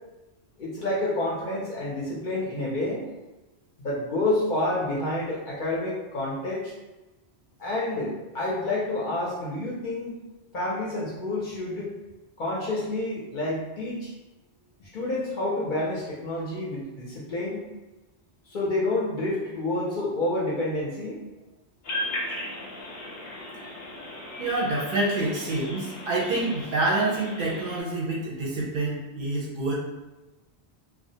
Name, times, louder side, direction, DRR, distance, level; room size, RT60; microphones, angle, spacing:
voice 1, 0.6-3.0 3.8-6.7 7.6-10.2 10.5-11.9 12.4-14.1 14.8-17.6 18.5-21.2, left 2 dB, 60° left, -5 dB, 0.6 m, -29 dB
sound 1, 21.8-27.8, left 1 dB, 90° left, 0.9 m, -37 dB
voice 2, 24.4-29.7, right 2 dB, 60° right, -4 dB, 0.6 m, -27 dB
2.4 x 2.0 x 2.7 m, 1.1 s
omnidirectional pair, 1.1 m